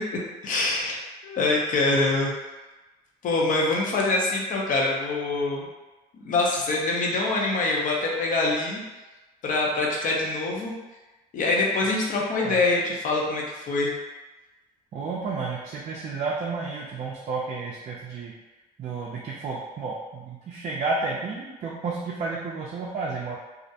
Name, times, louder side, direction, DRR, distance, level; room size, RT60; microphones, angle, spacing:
voice 1, 0.4-2.3 3.2-5.7 6.1-8.8 9.4-10.7 11.3-13.9, left 2 dB, 50° left, -1 dB, 0.6 m, -24 dB
voice 2, 14.9-18.3 18.8-23.4, right 4 dB, 45° right, -4 dB, 0.4 m, -31 dB
2.4 x 2.1 x 2.7 m, 1.1 s
cardioid pair, 110°, 17 cm